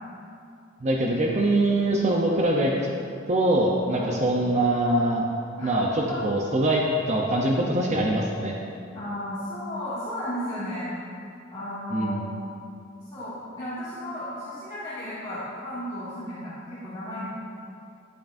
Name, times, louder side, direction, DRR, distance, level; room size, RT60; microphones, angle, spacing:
voice 1, 0.8-2.9 3.3-5.3 5.6-8.5 11.9-12.3, right 1 dB, 35° right, -1 dB, 0.7 m, -23 dB
voice 2, 8.9-10.9 11.5-12.2 13.1-17.3, left 1 dB, 20° left, -14 dB, 2.1 m, -34 dB
11.5 x 8.8 x 2.6 m, 2.5 s
head